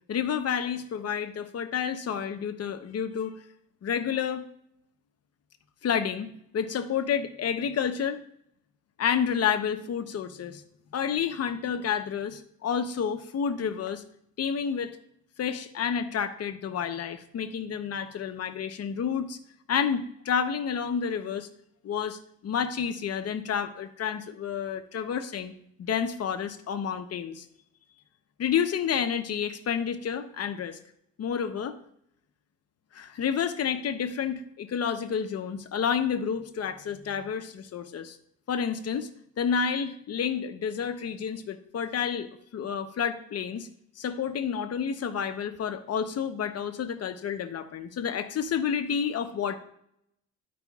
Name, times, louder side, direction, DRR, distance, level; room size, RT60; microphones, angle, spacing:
voice 1, 0.1-3.4 3.8-4.5 5.8-8.2 9.0-10.6 10.9-14.0 14.4-15.0 15.4-19.4 19.7-21.5 21.8-25.5 25.8-27.5 28.4-30.8 31.2-31.7 32.9-38.2 38.5-39.1 39.4-43.7 44.0-49.6, left 7 dB, 55° left, 8 dB, 0.9 m, -30 dB
12.5 x 5.1 x 2.4 m, 0.73 s
cardioid pair, 90°, 30 cm